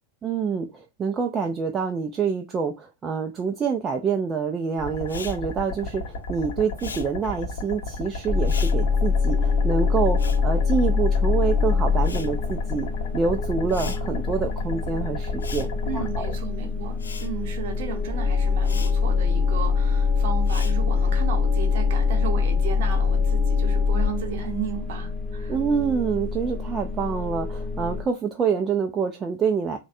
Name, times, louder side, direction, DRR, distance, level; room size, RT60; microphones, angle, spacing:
voice 1, 0.2-12.9 13.1-15.7 16.2-16.3 25.5-29.8, right 6 dB, 25° right, 0.3 m, -26 dB
sound 1, 4.8-16.3, left 2 dB, 55° left, 0.9 m, -34 dB
Respiratory sounds, 5.0-11.5 11.7-21.2, left 4 dB, 70° left, 0.3 m, -42 dB
sound 2, 8.3-28.0, left 5 dB, 10° left, 0.7 m, -24 dB
voice 2, 15.8-25.6, right 7 dB, 55° right, 0.9 m, -34 dB
3.1 x 2.1 x 2.5 m
figure-of-eight pair, 90°, 0 cm